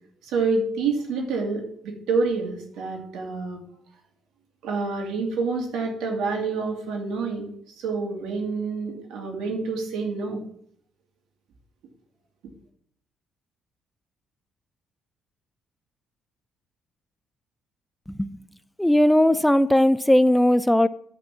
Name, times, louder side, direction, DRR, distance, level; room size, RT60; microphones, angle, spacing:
voice 1, 0.2-3.6 4.6-7.5 7.8-10.4, right 4 dB, 90° right, 1 dB, 2.4 m, -27 dB
voice 2, 18.8-20.9, left 1 dB, 5° left, 15 dB, 0.4 m, -18 dB
10.5 x 4.3 x 7.1 m, 0.65 s
cardioid pair, 105°, 0 cm